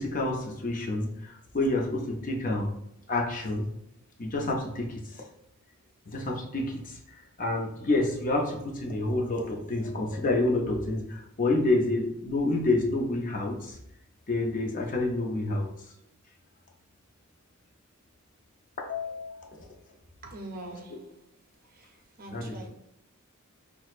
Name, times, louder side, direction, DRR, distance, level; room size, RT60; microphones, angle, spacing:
voice 1, 0.0-2.7 3.1-3.7 4.2-5.0 6.1-7.0 7.4-13.8 14.3-15.7 18.8-19.5 22.3-22.6, left 2 dB, 40° left, 0.6 m, -28 dB
voice 2, 20.2-21.3 21.7-22.7, right 1 dB, 40° right, 0.6 m, -44 dB
6.0 x 2.1 x 2.4 m
head